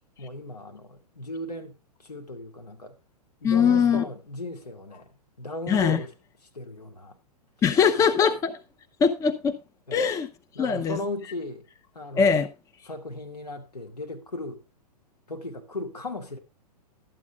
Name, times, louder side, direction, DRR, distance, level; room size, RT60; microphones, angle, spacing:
voice 1, 0.2-3.0 3.4-5.1 5.4-6.1 6.5-7.2 7.7-7.8 9.9-10.1 10.5-11.7 11.9-12.4 12.9-14.6 15.3-16.4, left 2 dB, 80° left, 2.5 m, -36 dB
voice 2, 3.4-4.0 5.7-6.0 7.6-8.6 9.0-9.6 9.9-10.3 10.6-11.0 12.1-12.5, left 6 dB, 15° left, 0.7 m, -21 dB
12.5 x 8.3 x 3.6 m
figure-of-eight pair, 110°, 20 cm